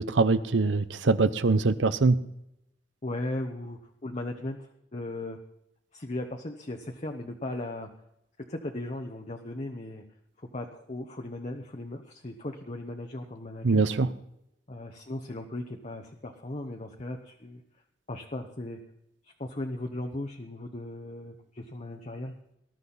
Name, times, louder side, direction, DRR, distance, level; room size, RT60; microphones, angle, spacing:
voice 1, 0.0-2.2 13.6-14.1, right 3 dB, 80° right, 14 dB, 0.7 m, -23 dB
voice 2, 3.0-5.4 5.9-7.9 8.5-10.0 10.4-13.9 14.7-17.6 18.1-18.8 19.4-22.3, left 1 dB, 40° left, 3 dB, 1.0 m, -37 dB
20.0 x 12.0 x 4.1 m, 0.83 s
head